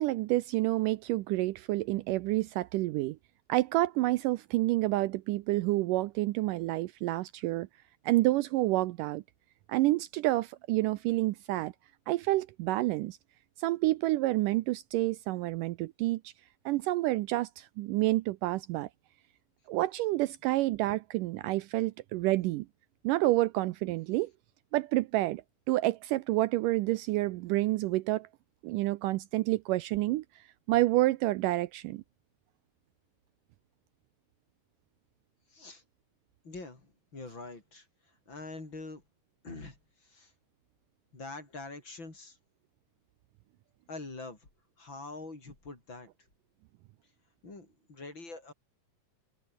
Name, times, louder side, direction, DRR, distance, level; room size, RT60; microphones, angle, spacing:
voice 1, 0.0-3.2 3.5-7.7 8.1-9.2 9.7-11.7 12.1-13.2 13.6-16.3 16.7-18.9 19.7-22.7 23.0-24.3 24.7-25.4 25.7-28.3 28.6-30.2 30.7-32.0, right 18 dB, 80° right, 2.1 m, -28 dB
voice 2, 35.5-35.8 36.4-37.9 38.3-39.0 39.4-40.3 41.1-42.4 43.9-44.5 44.8-46.1 47.4-48.5, left 3 dB, 30° left, 5.7 m, -44 dB
open air
omnidirectional pair, 4.0 m